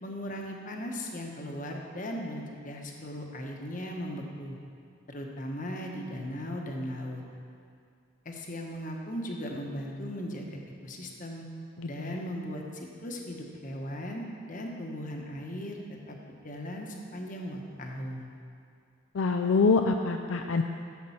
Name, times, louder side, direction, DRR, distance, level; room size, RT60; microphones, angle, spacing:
voice 1, 0.0-4.6 5.1-7.2 8.2-11.5 11.9-15.8 16.1-16.2 16.4-18.3, equal, 40° left, 1 dB, 1.1 m, -37 dB
voice 2, 11.8-12.2 19.1-20.6, left 4 dB, 70° left, 5 dB, 0.4 m, -25 dB
10.5 x 7.7 x 5.7 m, 2.3 s
head